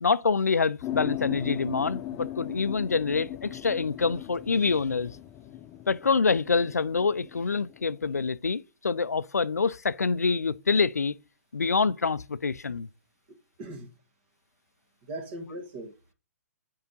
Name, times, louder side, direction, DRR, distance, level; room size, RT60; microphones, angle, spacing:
voice 1, 0.0-5.2 5.9-11.2 11.5-12.9, left 4 dB, 90° left, 0.4 m, -26 dB
sound 1, 0.8-8.3, left 12 dB, 25° left, 0.5 m, -38 dB
voice 2, 15.1-16.1, right 1 dB, 40° right, 1.8 m, -39 dB
7.2 x 4.7 x 4.0 m
figure-of-eight pair, 125°, 8 cm